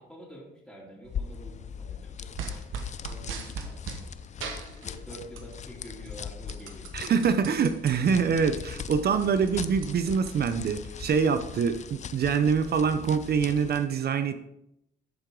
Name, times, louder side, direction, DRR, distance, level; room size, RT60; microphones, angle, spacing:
voice 1, 0.0-2.7 3.0-4.1 4.8-7.1, equal, ahead, -5 dB, 2.9 m, -47 dB
sound 1, 1.0-13.9, left 7 dB, 35° left, 0.4 m, -40 dB
sound 2, 2.4-4.0 4.4-5.5 5.9-7.9 8.4-8.5 8.7-11.1, right 5 dB, 85° right, 1.2 m, -39 dB
voice 2, 6.9-14.5, right 6 dB, 55° right, 10 dB, 0.7 m, -25 dB
11.5 x 4.8 x 3.8 m, 0.79 s
cardioid pair, 90°, 20 cm